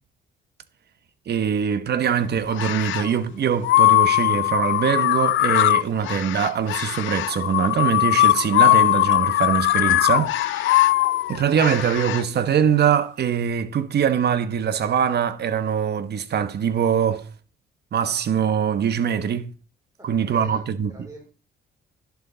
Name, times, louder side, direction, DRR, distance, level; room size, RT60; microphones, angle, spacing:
voice 1, 1.3-10.8 11.3-17.3 17.9-19.5 20.0-20.9, right 8 dB, 55° right, 1.1 m, -23 dB
sound 1, 2.5-3.1 3.6-12.2, left 16 dB, 75° left, 0.4 m, -20 dB
voice 2, 20.0-21.3, right 1 dB, 15° right, 3.1 m, -45 dB
11.0 x 7.0 x 3.9 m
cardioid pair, 90°, 20 cm